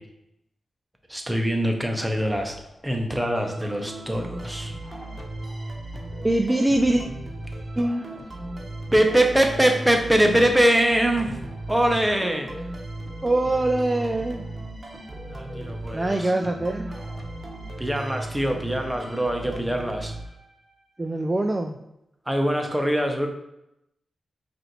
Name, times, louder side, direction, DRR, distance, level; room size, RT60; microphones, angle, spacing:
voice 1, 1.1-2.5 2.8-4.8 8.9-12.5 15.3-16.3 17.8-20.2 22.3-23.3, right 1 dB, 10° right, 3 dB, 0.8 m, -23 dB
sound 1, 2.0-20.0, left 1 dB, 25° left, 0.6 m, -46 dB
sound 2, 3.4-20.9, right 2 dB, 40° right, 0.8 m, -36 dB
voice 2, 6.2-7.0 7.8-8.0 13.2-14.4 15.9-16.9 21.0-21.8, right 1 dB, 25° right, 3 dB, 0.3 m, -23 dB
4.8 x 2.6 x 3.0 m, 0.85 s
cardioid pair, 65°, 0 cm